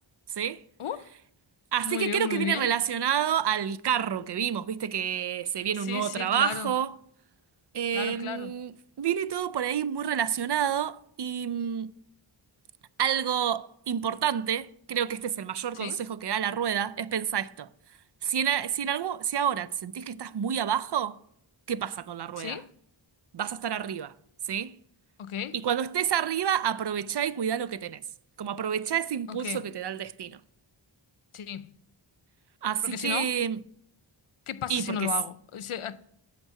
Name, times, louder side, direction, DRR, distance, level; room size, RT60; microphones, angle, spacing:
voice 1, 0.3-0.6 1.7-6.9 7.7-11.9 13.0-17.7 18.2-21.2 21.7-22.6 23.3-24.1 24.5-24.8 25.5-28.0 28.4-30.4 32.6-33.6 34.7-35.1, right 9 dB, 55° right, 0.5 m, -29 dB
voice 2, 1.8-2.7 5.8-6.7 7.9-8.5 15.8-16.0 22.4-22.7 25.2-25.6 29.3-29.6 31.3-31.7 32.8-33.3 34.5-36.0, left 8 dB, 85° left, 0.6 m, -34 dB
8.2 x 6.0 x 5.8 m
wide cardioid pair, 40°, 49 cm